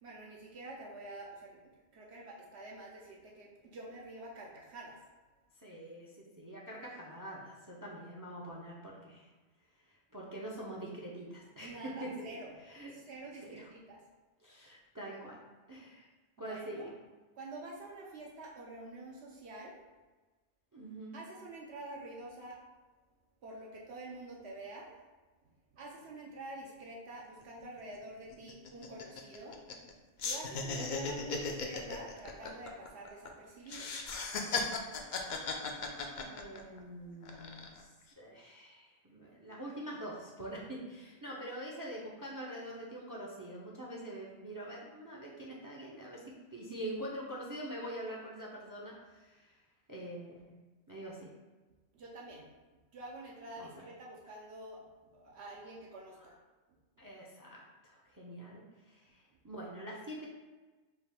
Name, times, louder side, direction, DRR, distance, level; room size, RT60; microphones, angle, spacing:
voice 1, 0.0-1.6 1.9-5.0 11.6-12.5 12.9-14.0 16.4-16.9 17.3-19.8 21.1-22.6 23.4-24.9 25.7-29.6 30.2-33.9 51.9-54.9 55.1-56.4, right 2 dB, 75° right, -3 dB, 0.9 m, -47 dB
voice 2, 5.6-9.3 10.1-12.3 12.6-12.9 13.4-13.7 14.4-15.4 15.7-16.0 16.4-16.9 20.7-21.2 36.2-37.9 38.2-49.6 49.9-50.6 50.9-51.3 53.6-53.7 57.0-60.3, right 1 dB, 30° right, -4 dB, 0.4 m, -44 dB
sound 1, 27.4-27.5 27.8-28.0 28.3-29.9 30.2-33.3 33.7-36.8 37.2-37.8, left 4 dB, 55° left, 0.5 m, -37 dB
4.7 x 2.5 x 3.4 m, 1.2 s
omnidirectional pair, 1.1 m